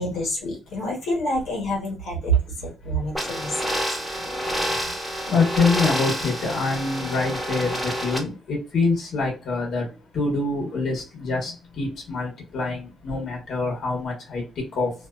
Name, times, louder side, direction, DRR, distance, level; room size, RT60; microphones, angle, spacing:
voice 1, 0.0-3.6, right 2 dB, 85° left, -2 dB, 1.2 m, -26 dB
sound 1, 3.1-8.2, equal, ahead, 1.0 m, -28 dB
voice 2, 4.6-9.9 10.1-14.9, left 3 dB, 60° left, 0 dB, 1.2 m, -26 dB
2.6 x 2.3 x 2.3 m, 0.32 s
cardioid pair, 90°, 0 cm